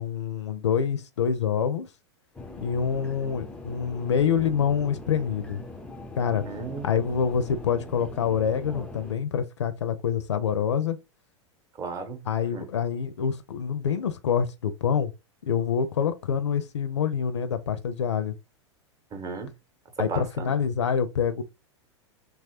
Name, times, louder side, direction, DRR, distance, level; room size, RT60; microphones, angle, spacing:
voice 1, 0.0-1.9 2.6-5.6 6.2-6.4 6.8-11.0 12.3-15.1 15.5-18.3 20.0-21.4, left 7 dB, 70° left, 0.5 m, -26 dB
sound 1, 2.3-9.1, left 2 dB, 5° left, 0.4 m, -41 dB
voice 2, 6.4-6.9 11.8-12.3 12.5-12.7 19.1-19.5 20.0-20.6, right 4 dB, 25° right, 0.8 m, -35 dB
3.0 x 2.4 x 2.8 m
figure-of-eight pair, 90°, 15 cm